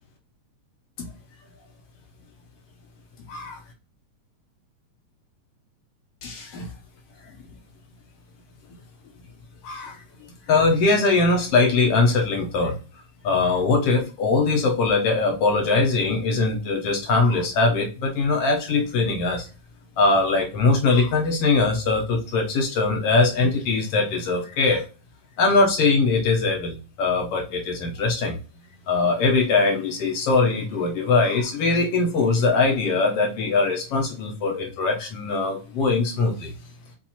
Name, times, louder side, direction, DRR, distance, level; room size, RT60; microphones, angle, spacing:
voice 1, 3.3-3.6 6.2-6.7 9.6-10.0 10.5-12.8 13.2-19.5 20.0-24.8 25.4-28.4 28.9-36.5, left 3 dB, 70° left, 2 dB, 1.5 m, -21 dB
7.2 x 2.5 x 2.8 m, 0.33 s
omnidirectional pair, 3.4 m